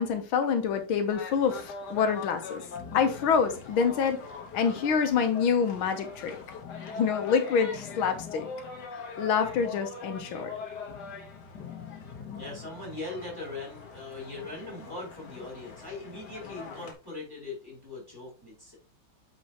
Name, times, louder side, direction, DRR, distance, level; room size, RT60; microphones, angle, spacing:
voice 1, 0.0-2.6 2.9-4.2 4.5-6.4 6.9-8.5 8.9-10.5, left 6 dB, 80° left, 1.7 m, -26 dB
sound 1, 1.1-16.9, left 5 dB, 60° left, 1.6 m, -42 dB
voice 2, 12.3-18.8, left 2 dB, 10° right, 3.7 m, -40 dB
8.5 x 4.3 x 2.9 m
omnidirectional pair, 2.2 m